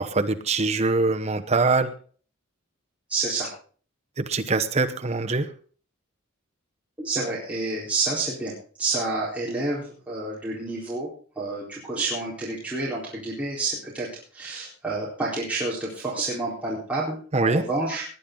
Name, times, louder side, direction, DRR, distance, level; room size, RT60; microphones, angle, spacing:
voice 1, 0.0-1.9 4.2-5.5 17.3-17.6, right 3 dB, 30° right, 8 dB, 1.0 m, -23 dB
voice 2, 3.1-3.5 7.0-8.5 8.8-11.1 11.4-14.1 14.3-18.0, right 3 dB, 5° right, -8 dB, 4.1 m, -29 dB
19.0 x 10.0 x 3.9 m, 0.42 s
head